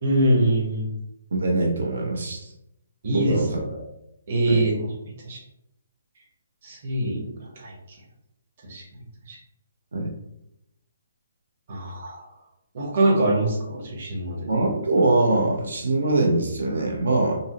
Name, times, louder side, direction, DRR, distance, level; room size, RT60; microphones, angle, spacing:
voice 1, 0.0-0.9 3.0-3.4 4.3-5.4 6.6-7.7 8.7-8.8 9.3-9.4 11.7-12.3 12.7-14.7, right 1 dB, 35° right, -3 dB, 1.0 m, -24 dB
voice 2, 1.3-2.5 3.1-3.8 4.5-4.6 9.9-10.1 14.5-17.4, right 2 dB, 80° right, 0 dB, 0.7 m, -23 dB
5.2 x 2.0 x 2.9 m, 0.82 s
hypercardioid pair, 175°, 0 cm